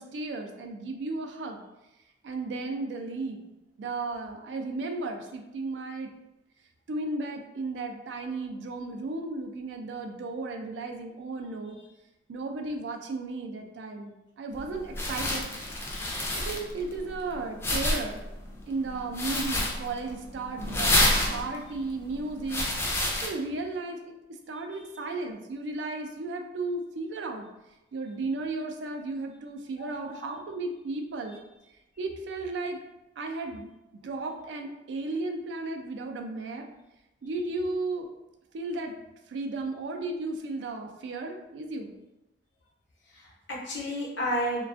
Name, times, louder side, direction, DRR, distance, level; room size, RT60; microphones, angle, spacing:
voice 1, 0.0-1.6 2.2-3.4 3.8-6.1 6.9-11.8 12.3-15.5 16.3-18.2 18.7-22.7 23.2-24.1 24.5-27.5 27.9-31.4 32.0-32.8 33.2-33.7 34.0-36.7 37.2-38.1 38.5-38.9 39.3-41.9, right 3 dB, 80° right, 4 dB, 0.3 m, -34 dB
sound 1, 14.5-23.3, left 1 dB, 15° left, 0.3 m, -29 dB
voice 2, 29.8-30.3 43.1-44.6, equal, 85° left, -3 dB, 0.7 m, -32 dB
2.4 x 2.2 x 2.4 m, 0.96 s
head